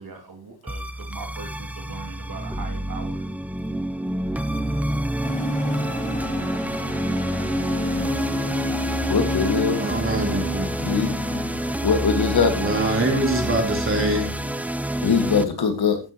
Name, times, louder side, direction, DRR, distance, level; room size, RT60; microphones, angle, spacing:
voice 1, 0.0-3.3, right 4 dB, 50° right, 2 dB, 2.8 m, -40 dB
sound 1, 0.7-15.4, right 1 dB, 5° right, 0.5 m, -27 dB
sound 2, 5.2-14.8, left 1 dB, 15° left, 2.1 m, -32 dB
voice 2, 9.1-9.8 10.8-11.1 11.8-12.7 15.0-16.0, left 5 dB, 60° left, 6 dB, 2.0 m, -21 dB
voice 3, 9.8-10.7 12.6-14.3, right 1 dB, 30° right, 1 dB, 3.6 m, -23 dB
14.5 x 9.2 x 3.1 m, 0.31 s
wide cardioid pair, 175°, 43 cm